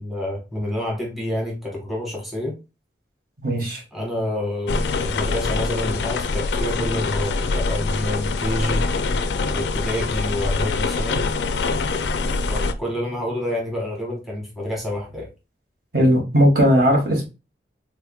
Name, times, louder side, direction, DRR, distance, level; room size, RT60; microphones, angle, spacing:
voice 1, 0.0-2.6 3.9-8.9 9.5-11.3 12.5-15.3, left 1 dB, ahead, -3 dB, 1.2 m, -28 dB
voice 2, 3.4-3.8 15.9-17.3, equal, 55° right, 1 dB, 1.5 m, -17 dB
sound 1, 4.7-12.7, left 3 dB, 70° left, 0.4 m, -24 dB
3.7 x 3.4 x 2.3 m, 0.27 s
head